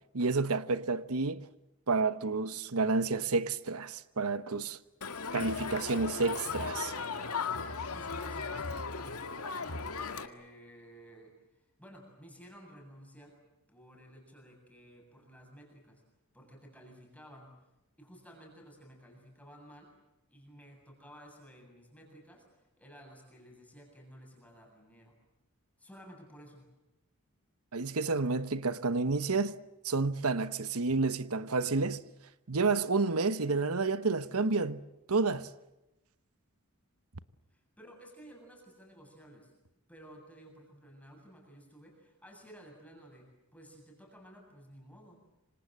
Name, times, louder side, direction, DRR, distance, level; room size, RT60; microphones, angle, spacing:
voice 1, 0.1-1.5 1.9-4.8 5.3-6.9 27.7-29.6 29.8-32.0 32.5-34.8 35.1-35.5, right 3 dB, 80° right, 1.1 m, -30 dB
Crowd, 5.0-10.3, left 5 dB, 85° left, 2.0 m, -37 dB
voice 2, 7.9-9.2 9.6-13.4 13.7-16.0 16.3-17.6 18.0-19.9 20.3-25.2 25.8-26.7 37.5-39.5 39.9-45.2, equal, 5° left, 7.8 m, -54 dB
27.0 x 26.0 x 7.6 m
head